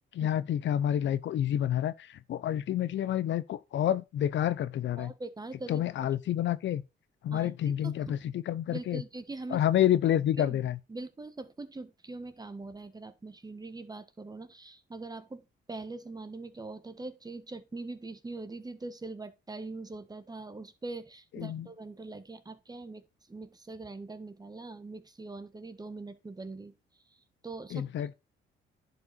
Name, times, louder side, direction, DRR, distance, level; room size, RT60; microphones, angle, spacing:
voice 1, 0.1-5.1 5.7-6.8 7.2-9.0 9.5-10.8 21.3-21.7 27.7-28.1, left 11 dB, 70° left, 0.8 m, -29 dB
voice 2, 5.0-5.8 7.3-7.5 8.1-8.3 8.7-9.6 10.4-10.6 10.9-15.4 15.7-23.0 23.3-26.7 27.4-27.8, right 3 dB, 20° right, 1.4 m, -42 dB
11.0 x 5.3 x 4.2 m
cardioid pair, 90°, 20 cm